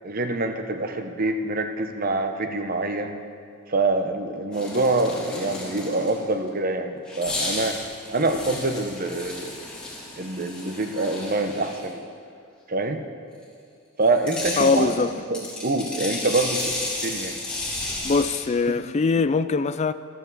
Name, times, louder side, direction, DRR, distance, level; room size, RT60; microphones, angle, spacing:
voice 1, 0.0-3.2 3.7-7.7 8.1-9.6 10.2-12.1 12.7-13.0 14.0-17.4, right 2 dB, 40° right, 0.9 m, -25 dB
sound 1, 4.5-6.3 7.0-11.9 14.0-18.4, left 2 dB, 5° left, 3.0 m, -33 dB
voice 2, 14.6-15.1 18.0-19.9, left 4 dB, 30° left, 0.3 m, -22 dB
15.0 x 13.0 x 4.1 m
head